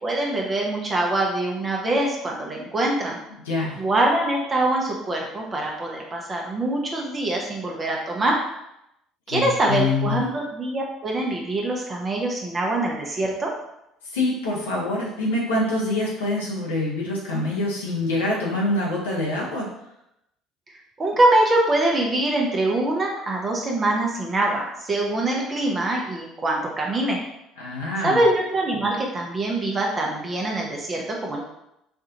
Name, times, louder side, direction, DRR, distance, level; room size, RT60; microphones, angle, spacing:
voice 1, 0.0-3.2 3.8-8.4 9.3-13.5 21.0-27.2 28.0-31.4, right 2 dB, 30° right, -1 dB, 0.8 m, -24 dB
voice 2, 3.5-3.8 9.3-10.2 14.1-19.7 27.6-28.2, left 2 dB, 85° left, -5 dB, 0.9 m, -25 dB
4.6 x 2.5 x 2.8 m, 0.83 s
hypercardioid pair, 65°, 0 cm